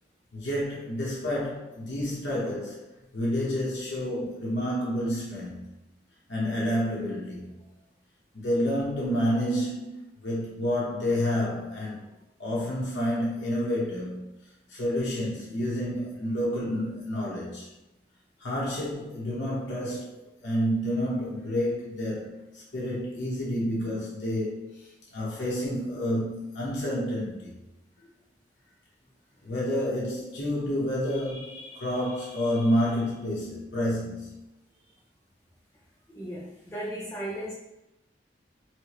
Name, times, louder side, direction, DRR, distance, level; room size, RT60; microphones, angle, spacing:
voice 1, 0.3-2.8 3.1-5.6 6.3-7.6 8.3-9.9 10.2-12.1 12.4-14.3 14.7-17.7 18.4-27.5 29.4-34.3, equal, 70° left, -6 dB, 0.8 m, -29 dB
voice 2, 36.1-37.5, right 1 dB, 15° left, -7 dB, 0.5 m, -36 dB
4.3 x 2.0 x 2.9 m, 0.93 s
head